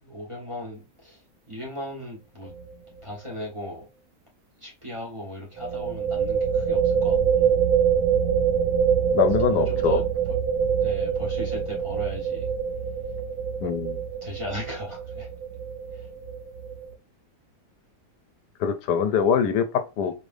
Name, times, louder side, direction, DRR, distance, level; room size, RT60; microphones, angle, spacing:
voice 1, 0.0-1.2 1.5-2.5 3.0-3.8 4.6-7.5 9.5-10.0 10.8-12.5 14.1-15.3 15.9-16.0 19.1-19.3, left 1 dB, 20° right, 1.3 m, -37 dB
sound 1, 2.5-2.7 3.0-3.1 5.6-16.9, right 7 dB, 70° right, 1.2 m, -25 dB
voice 2, 9.1-10.0 13.6-14.0 18.6-20.1, left 7 dB, 75° left, 1.2 m, -23 dB
4.9 x 3.3 x 2.6 m
omnidirectional pair, 1.8 m